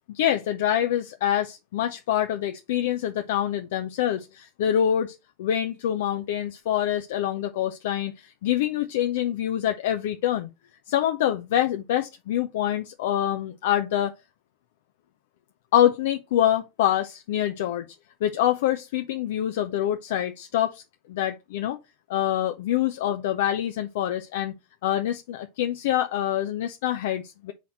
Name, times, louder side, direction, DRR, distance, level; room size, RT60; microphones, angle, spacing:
voice 1, 0.1-10.5 10.9-14.1 15.7-17.8 18.2-20.8 21.1-21.8 22.1-24.5 24.8-27.5, left 11 dB, 55° left, 0.6 m, -25 dB
5.8 x 4.2 x 4.2 m
figure-of-eight pair, 90°, 0 cm